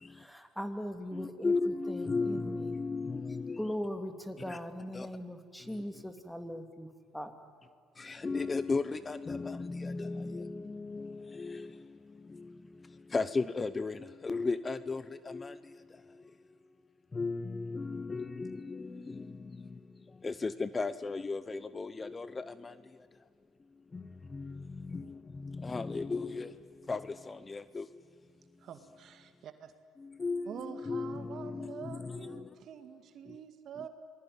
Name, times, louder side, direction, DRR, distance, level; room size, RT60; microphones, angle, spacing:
voice 1, 0.1-2.8 3.6-7.4, equal, 5° left, 2.8 m, -40 dB
voice 2, 1.1-3.6 4.5-4.6 4.9-5.1 8.0-11.7 13.1-15.6 17.1-19.3 20.2-22.7 23.9-24.0 24.3-25.1 25.4-26.5 26.9-27.0 27.3-27.9 30.2-32.4, left 3 dB, 25° left, 0.9 m, -35 dB
voice 3, 28.6-29.7 30.5-33.9, right 8 dB, 60° right, 2.1 m, -47 dB
27.5 x 20.0 x 9.5 m
supercardioid pair, 70°, 0 cm